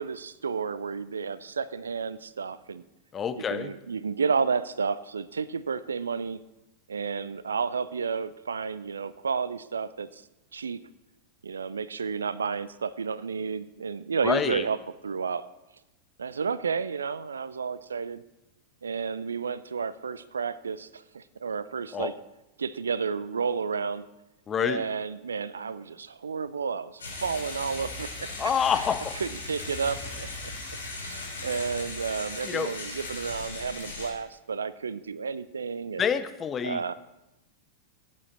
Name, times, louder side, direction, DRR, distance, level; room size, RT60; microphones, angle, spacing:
voice 1, 0.0-2.8 3.4-6.4 6.9-10.2 10.5-10.8 11.4-14.8 15.0-15.5 16.2-18.2 18.8-22.1 22.6-24.1 24.6-28.8 29.2-30.5 30.9-36.1 36.6-36.9, right 5 dB, 70° right, 17 dB, 0.4 m, -31 dB
voice 2, 3.1-3.7 14.2-14.6 21.9-22.1 24.5-24.8 28.4-29.2 32.4-32.7 36.0-36.8, left 7 dB, 25° left, 11 dB, 0.7 m, -27 dB
sound 1, 27.0-34.1, left 3 dB, 70° left, 3.1 m, -38 dB
16.0 x 8.7 x 4.0 m, 0.96 s
figure-of-eight pair, 90°, 0 cm